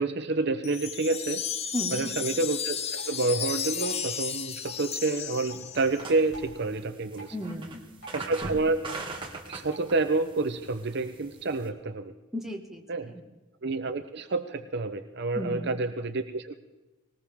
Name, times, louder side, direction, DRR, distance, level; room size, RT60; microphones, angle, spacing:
voice 1, 0.0-1.4 1.9-7.3 8.1-8.9 9.5-12.1 12.9-13.1 13.6-16.6, right 3 dB, 50° right, 9 dB, 0.7 m, -29 dB
Wind chime, 0.6-6.0, left 8 dB, 30° left, 0.6 m, -33 dB
voice 2, 1.7-2.1 7.3-7.9 12.3-13.2 15.3-15.8, equal, ahead, 0 dB, 1.5 m, -35 dB
Drip, 2.9-9.9, right 3 dB, 55° left, 4.9 m, -52 dB
sound 1, 5.8-11.7, right 2 dB, 20° right, 1.6 m, -41 dB
20.0 x 19.0 x 3.5 m, 1.1 s
head